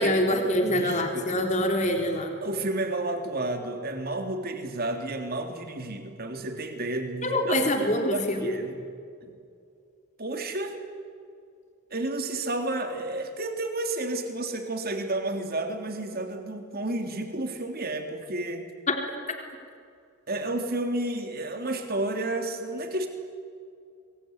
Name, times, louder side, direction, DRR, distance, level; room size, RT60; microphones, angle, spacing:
voice 1, 0.0-2.3 7.2-8.6 18.9-19.0, left 1 dB, 30° left, 3 dB, 3.9 m, -25 dB
voice 2, 0.6-1.3 2.4-8.8 9.2-9.3 10.2-10.8 11.9-18.7 20.3-23.1, right 2 dB, 45° right, 5 dB, 3.4 m, -31 dB
27.0 x 22.5 x 9.7 m, 2.3 s
head